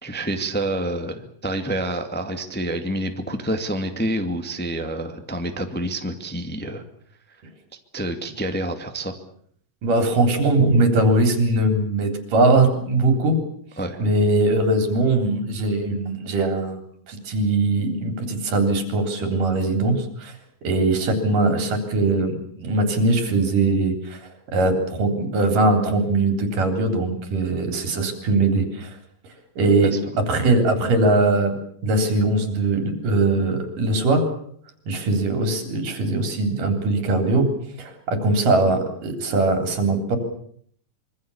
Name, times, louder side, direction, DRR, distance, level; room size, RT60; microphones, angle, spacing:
voice 1, 0.0-6.8 7.9-9.1 13.8-14.0 29.8-30.0, right 1 dB, 5° left, 6 dB, 1.5 m, -28 dB
voice 2, 9.8-13.4 14.0-16.8 17.1-20.3 20.6-24.2 24.5-28.9 29.6-29.9 30.3-31.6 31.8-34.3 34.9-37.5 37.8-40.2, right 2 dB, 75° right, 6 dB, 5.2 m, -21 dB
26.0 x 23.5 x 7.1 m, 0.63 s
omnidirectional pair, 3.8 m